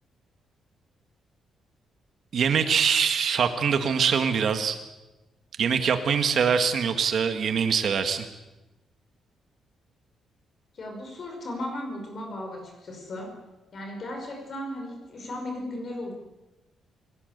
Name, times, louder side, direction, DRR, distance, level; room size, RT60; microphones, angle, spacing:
voice 1, 2.3-4.8 5.6-8.3, right 6 dB, 50° right, 7 dB, 1.8 m, -23 dB
voice 2, 10.7-13.4 13.7-16.1, left 1 dB, 40° left, 3 dB, 5.3 m, -36 dB
28.5 x 17.5 x 8.1 m, 1.0 s
cardioid pair, 165°, 0 cm